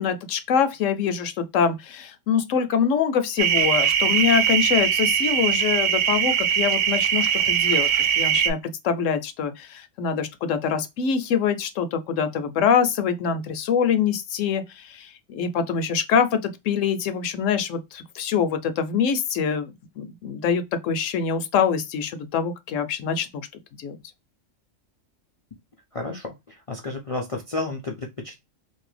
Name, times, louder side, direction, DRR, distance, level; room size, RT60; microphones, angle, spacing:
voice 1, 0.0-7.9 8.2-8.6 8.8-23.5 23.8-24.0, left 7 dB, 75° left, 0.9 m, -24 dB
sound 1, 3.4-8.5, right 9 dB, 70° right, 0.9 m, -21 dB
voice 2, 25.9-28.4, left 2 dB, 50° left, 0.4 m, -32 dB
2.7 x 2.6 x 3.1 m
omnidirectional pair, 1.4 m